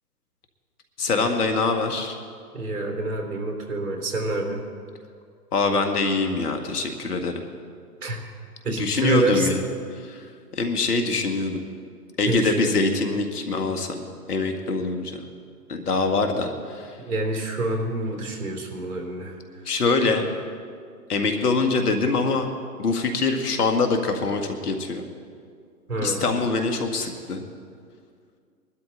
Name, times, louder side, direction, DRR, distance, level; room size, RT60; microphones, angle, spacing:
voice 1, 1.0-2.2 5.5-7.4 8.7-9.6 10.0-10.2 10.5-11.6 12.2-14.0 14.3-15.2 15.7-16.9 19.7-20.2 21.1-22.5 22.8-25.0 26.0-27.4, left 3 dB, 70° left, 5 dB, 1.9 m, -24 dB
voice 2, 2.5-4.6 8.0-8.2 8.6-9.5 12.3-12.7 17.0-19.4 25.9-26.3, right 2 dB, 75° right, 3 dB, 3.3 m, -27 dB
20.5 x 12.0 x 4.0 m, 2.2 s
hypercardioid pair, 130°, 47 cm